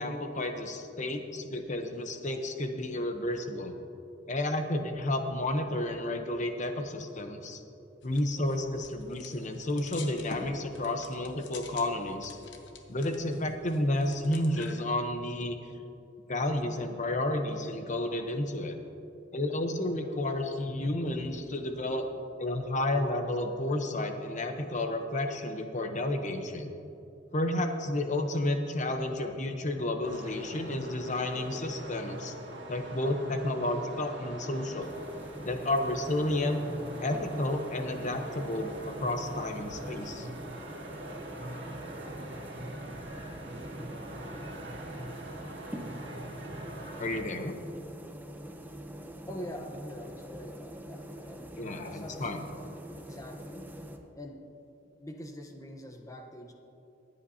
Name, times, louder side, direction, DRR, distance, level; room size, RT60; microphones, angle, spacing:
voice 1, 0.0-3.7 4.3-7.6 8.0-12.3 12.9-15.6 16.3-18.8 19.3-22.1 22.4-26.7 27.3-32.3 32.7-34.9 35.4-36.6 37.0-40.3 47.0-47.5 51.6-52.4, left 1 dB, 40° left, 6 dB, 0.9 m, -31 dB
sound 1, 8.0-14.8, left 3 dB, 75° left, 1.1 m, -48 dB
sound 2, 30.0-47.2, right 1 dB, 90° right, 1.8 m, -43 dB
sound 3, 34.8-54.0, right 1 dB, 10° right, 0.7 m, -45 dB
voice 2, 49.3-53.7 54.1-54.4 55.0-56.5, left 1 dB, 20° left, 2 dB, 1.0 m, -44 dB
24.0 x 8.2 x 2.8 m, 2.8 s
head